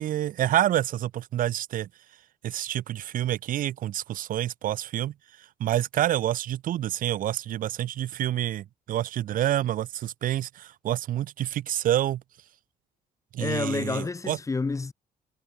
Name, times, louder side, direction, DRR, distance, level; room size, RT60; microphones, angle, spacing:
voice 1, 0.0-1.9 2.4-5.1 5.6-12.2 13.3-14.4, right 12 dB, 60° right, 0.7 m, -28 dB
voice 2, 13.4-14.9, left 4 dB, 20° left, 2.0 m, -29 dB
cardioid pair, 135°, 16 cm